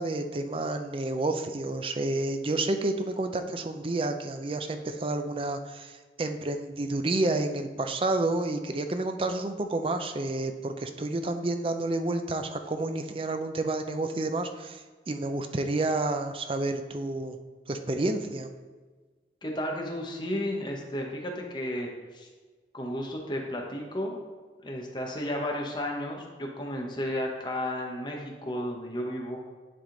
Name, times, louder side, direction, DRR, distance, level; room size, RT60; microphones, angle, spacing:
voice 1, 0.0-5.9 6.2-14.8 15.1-17.4 17.7-18.5, right 2 dB, 30° right, 7 dB, 0.4 m, -30 dB
voice 2, 19.4-22.3 22.7-24.2 24.6-29.5, left 1 dB, 25° left, 0 dB, 1.0 m, -33 dB
10.0 x 3.6 x 3.8 m, 1.4 s
head